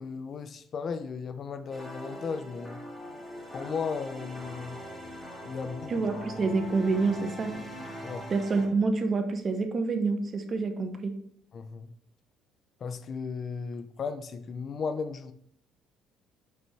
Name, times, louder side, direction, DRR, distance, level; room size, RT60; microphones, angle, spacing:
voice 1, 0.0-2.8 3.5-4.8 5.4-6.0 8.0-8.3 11.5-11.9 12.8-15.3, left 5 dB, 45° left, 0.5 m, -35 dB
sound 1, 1.7-8.7, equal, 5° left, 1.7 m, -41 dB
voice 2, 5.9-7.6 8.3-11.1, right 3 dB, 35° right, 0.9 m, -27 dB
7.8 x 5.2 x 3.3 m
cardioid pair, 120°, 0 cm